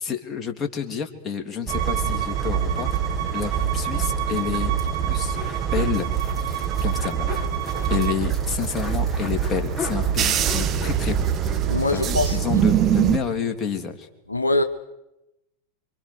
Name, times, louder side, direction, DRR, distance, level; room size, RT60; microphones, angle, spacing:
voice 1, 0.0-2.9 3.3-4.7 5.1-5.4 5.7-6.1 6.8-7.3 7.9-11.3 11.9-14.1, left 7 dB, 20° left, 4 dB, 3.3 m, -29 dB
sound 1, 1.7-13.2, right 8 dB, 30° right, 1.8 m, -24 dB
Bowed string instrument, 1.7-8.2, right 13 dB, 55° right, 2.7 m, -32 dB
sound 2, 2.6-12.0 12.3-12.4 12.6-12.7, left 3 dB, ahead, 5.0 m, -39 dB
voice 2, 11.7-12.4 14.3-14.6, left 2 dB, 80° left, 7 dB, 1.3 m, -22 dB
27.5 x 25.0 x 6.4 m, 0.91 s
figure-of-eight pair, 90°, 0 cm